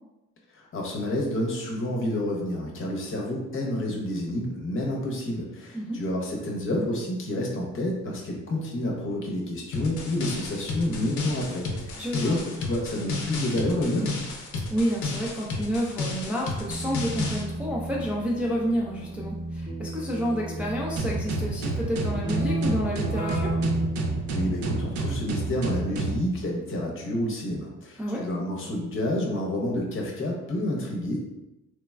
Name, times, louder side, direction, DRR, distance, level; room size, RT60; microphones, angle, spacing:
voice 1, 0.5-14.1 24.3-31.3, left 1 dB, 45° left, -1 dB, 0.8 m, -29 dB
sound 1, 9.7-17.4, left 3 dB, 75° left, 0.6 m, -32 dB
voice 2, 12.0-12.5 14.7-23.6 28.0-28.3, equal, 5° right, -4 dB, 0.4 m, -29 dB
Keyboard (musical), 16.7-25.1, right 1 dB, 30° right, 0.8 m, -33 dB
sound 2, 21.0-26.2, right 3 dB, 70° right, 0.5 m, -29 dB
3.1 x 2.2 x 2.2 m, 0.97 s
cardioid pair, 90°, 30 cm